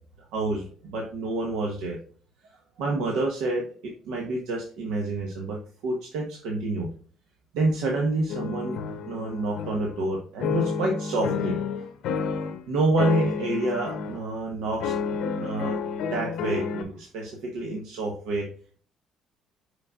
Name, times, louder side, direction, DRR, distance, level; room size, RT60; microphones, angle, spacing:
voice 1, 0.3-2.0 2.8-5.6 5.8-6.9 7.5-8.8 9.1-11.9 12.3-15.0 15.4-15.8 16.1-18.5, right 2 dB, 90° right, -1 dB, 1.4 m, -28 dB
sound 1, 8.3-10.1 10.4-12.6 13.0-14.2 14.8-16.8, left 6 dB, 75° left, 0.8 m, -30 dB
6.5 x 5.9 x 2.5 m, 0.43 s
cardioid pair, 125°, 0 cm